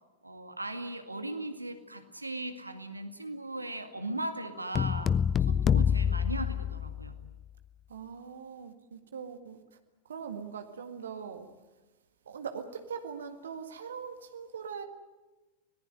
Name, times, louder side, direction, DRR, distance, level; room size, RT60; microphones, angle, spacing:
voice 1, 0.2-5.2 5.5-7.2, right 1 dB, 85° right, 2.1 m, -38 dB
sound 1, 4.7-7.3, left 8 dB, 25° left, 0.7 m, -27 dB
voice 2, 7.9-9.6 10.0-11.5 12.2-14.8, right 6 dB, 65° right, 1.8 m, -41 dB
26.0 x 19.0 x 9.3 m
figure-of-eight pair, 90°, 0 cm